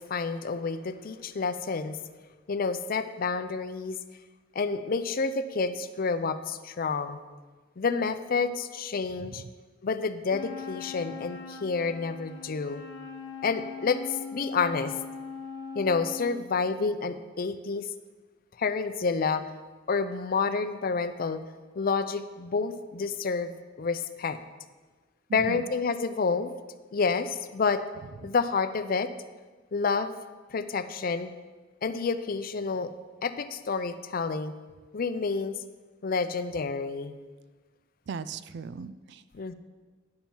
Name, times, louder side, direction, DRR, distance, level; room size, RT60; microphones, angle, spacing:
voice 1, 0.0-2.0 2.5-4.0 4.5-7.2 7.8-9.4 9.8-12.8 13.4-14.9 15.7-17.9 18.6-19.4 19.9-21.4 21.8-23.5 23.8-24.4 25.3-26.5 26.9-27.8 28.2-29.1 29.7-30.1 30.5-31.3 31.8-32.9 33.2-34.5 34.9-35.6 36.0-37.2 39.3-39.5, left 4 dB, 45° left, 11 dB, 0.5 m, -29 dB
voice 2, 9.2-9.5 25.3-25.6 28.2-28.3 38.1-39.2, right 5 dB, 60° right, 14 dB, 0.4 m, -39 dB
Wind instrument woodwind instrument, 10.3-16.4, left 5 dB, 65° left, 0.9 m, -40 dB
10.5 x 7.1 x 4.4 m, 1.3 s
head